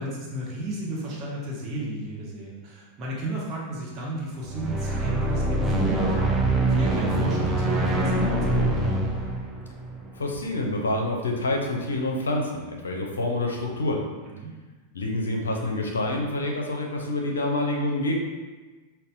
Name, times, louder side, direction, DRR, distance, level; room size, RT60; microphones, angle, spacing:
voice 1, 0.0-6.3 6.7-9.1 14.3-14.5, right 1 dB, 35° right, -4 dB, 1.0 m, -33 dB
sound 1, 4.4-10.8, right 1 dB, 15° right, 0.5 m, -24 dB
voice 2, 10.2-14.0 14.9-18.1, left 2 dB, 70° left, 1 dB, 0.5 m, -27 dB
5.3 x 2.2 x 2.6 m, 1.3 s
figure-of-eight pair, 90°, 0 cm